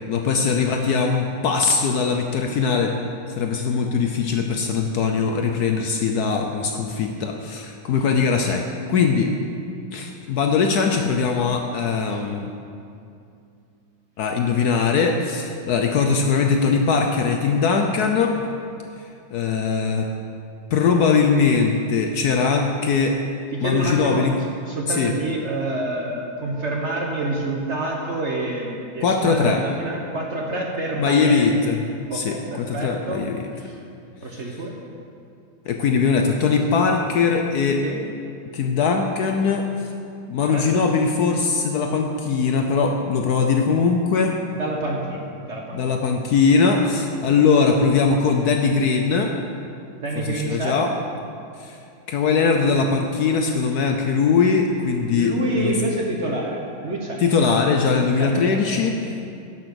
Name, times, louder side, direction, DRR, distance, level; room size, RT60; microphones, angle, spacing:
voice 1, 0.1-2.9 3.3-9.3 9.9-12.5 14.2-18.4 19.3-20.1 20.7-23.2 23.6-24.3 24.9-25.1 29.0-29.6 31.0-33.4 34.5-34.6 35.7-37.8 38.5-39.7 40.3-44.4 45.7-49.3 50.2-50.9 51.6-51.8 52.1-55.8 57.2-59.0, left 5 dB, 65° left, 4 dB, 1.0 m, -21 dB
voice 2, 23.5-24.2 24.6-31.5 32.1-33.3 33.6-33.8 34.2-34.8 37.8-38.0 40.4-40.8 44.6-45.8 50.0-50.8 55.2-57.2 58.2-58.8, right 2 dB, 45° right, -1 dB, 1.1 m, -28 dB
10.5 x 6.0 x 6.7 m, 2.5 s
omnidirectional pair, 2.1 m